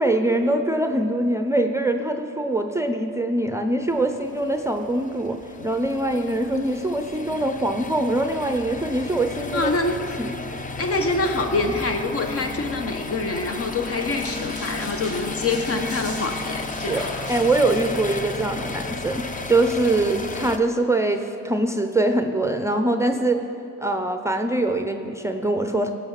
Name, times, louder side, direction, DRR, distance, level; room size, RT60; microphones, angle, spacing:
voice 1, 0.0-5.4 5.6-9.7 10.2-10.3 10.9-11.0 16.9-23.4 23.8-25.9, right 2 dB, 10° right, 6 dB, 0.6 m, -23 dB
sound 1, 3.9-20.6, left 3 dB, 25° left, 0.7 m, -33 dB
voice 2, 9.5-10.0 10.8-17.0, left 3 dB, 50° left, 6 dB, 1.2 m, -25 dB
sound 2, 14.2-18.2, left 1 dB, 75° left, 2.7 m, -40 dB
17.0 x 5.8 x 5.7 m, 2.9 s
cardioid pair, 90°, 30 cm